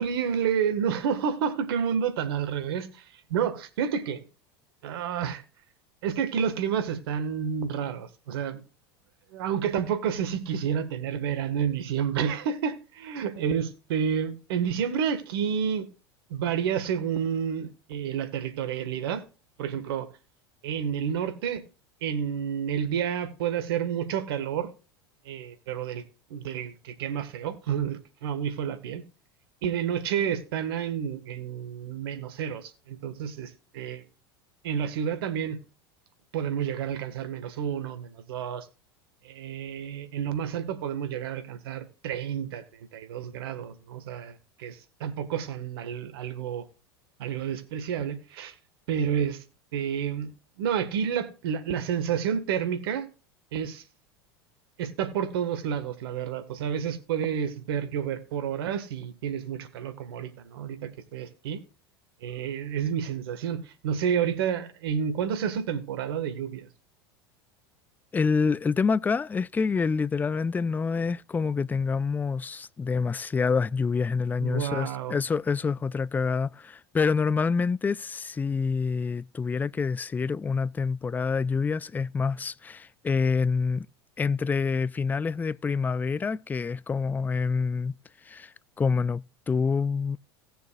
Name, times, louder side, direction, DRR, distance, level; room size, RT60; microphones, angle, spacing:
voice 1, 0.0-4.2 4.8-5.4 6.0-8.6 9.3-15.9 16.3-19.2 19.6-20.1 20.6-21.6 22.0-24.7 25.3-26.0 26.3-29.0 29.6-34.0 34.6-35.6 36.3-38.7 39.2-46.6 47.2-48.5 48.9-49.4 49.7-50.3 50.6-53.1 53.5-53.8 54.8-61.6 62.2-66.7 74.4-75.2, right 8 dB, 70° right, 1.7 m, -30 dB
voice 2, 68.1-83.9 84.2-87.9 88.3-90.2, left 5 dB, 15° left, 0.3 m, -27 dB
18.0 x 6.8 x 2.4 m
hypercardioid pair, 85°, 13 cm